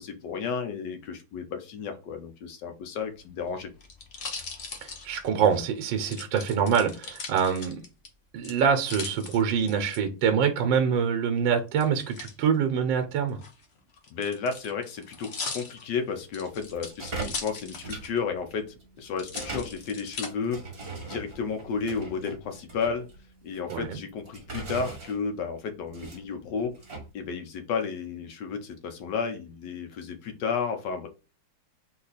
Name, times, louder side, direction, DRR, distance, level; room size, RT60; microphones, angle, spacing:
voice 1, 0.0-3.7 14.1-18.6 19.0-20.6 21.0-23.1 23.4-26.7 27.1-31.1, left 5 dB, 70° left, 1.4 m, -32 dB
sound 1, 3.1-5.6 6.1-8.1 8.4-10.0 11.8-12.3 13.3-18.2 18.5-18.6 19.2-20.3 20.9-21.5, left 4 dB, 45° left, 1.0 m, -39 dB
voice 2, 4.8-7.8 8.3-13.4 23.7-24.0, right 7 dB, 85° right, 1.5 m, -25 dB
sound 2, 16.5-27.1, right 3 dB, 35° right, 1.4 m, -41 dB
4.1 x 2.9 x 4.0 m
omnidirectional pair, 2.0 m